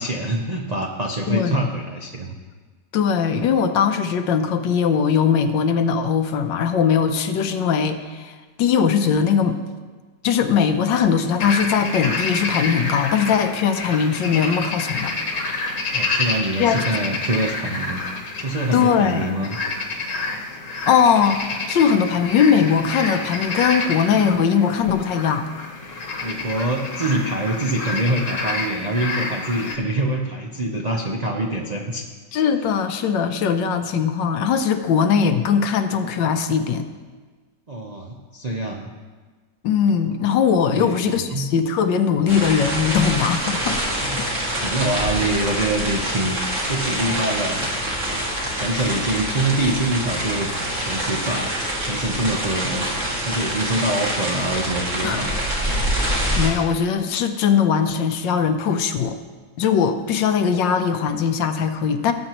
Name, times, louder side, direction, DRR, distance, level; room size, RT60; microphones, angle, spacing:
voice 1, 0.0-2.3 15.9-18.0 18.4-19.6 26.2-32.0 37.7-38.9 40.7-41.5 44.0-44.3 44.6-46.4 46.7-47.7 48.1-48.2 48.5-51.5 51.8-52.9 53.2-55.4, right 1 dB, 70° right, 0 dB, 0.3 m, -25 dB
voice 2, 1.3-1.7 2.9-8.3 8.6-9.6 10.2-15.1 16.6-16.8 18.7-19.3 20.9-25.5 32.3-36.9 39.6-43.8 44.2-44.3 44.6-44.7 55.0-55.3 56.0-59.2 59.6-62.1, left 7 dB, 80° left, 8 dB, 1.4 m, -20 dB
sound 1, 11.4-29.8, left 3 dB, 50° left, 1.4 m, -28 dB
sound 2, 42.3-56.5, right 1 dB, 45° right, 2.4 m, -25 dB
17.0 x 7.6 x 3.0 m, 1.4 s
omnidirectional pair, 2.0 m